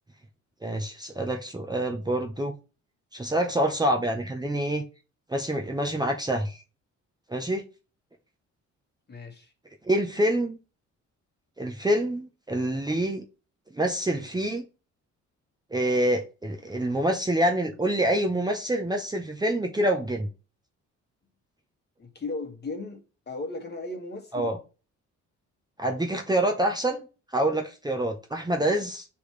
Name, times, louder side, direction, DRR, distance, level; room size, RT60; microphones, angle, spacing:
voice 1, 0.6-2.5 3.1-4.8 5.3-6.6 7.3-7.6 9.8-10.6 11.6-13.3 13.7-14.6 15.7-20.3 24.3-24.6 25.8-27.1 27.3-29.1, right 1 dB, 15° right, 0.8 m, -26 dB
voice 2, 9.1-9.5 22.0-24.5, left 3 dB, 35° left, 1.6 m, -36 dB
9.9 x 3.4 x 3.2 m
cardioid pair, 90°, 30 cm